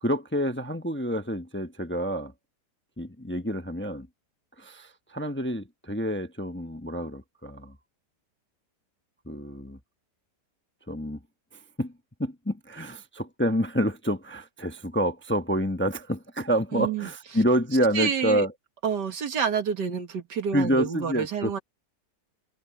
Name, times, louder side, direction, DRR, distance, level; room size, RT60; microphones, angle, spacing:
voice 1, 0.0-2.3 3.0-4.1 4.6-7.7 9.3-9.8 10.9-11.2 11.5-11.9 12.2-18.5 20.5-21.5, equal, 10° left, 0.7 m, -28 dB
voice 2, 16.7-17.1 17.9-18.5 18.8-21.6, right 7 dB, 80° right, 2.2 m, -28 dB
omnidirectional pair, 1.8 m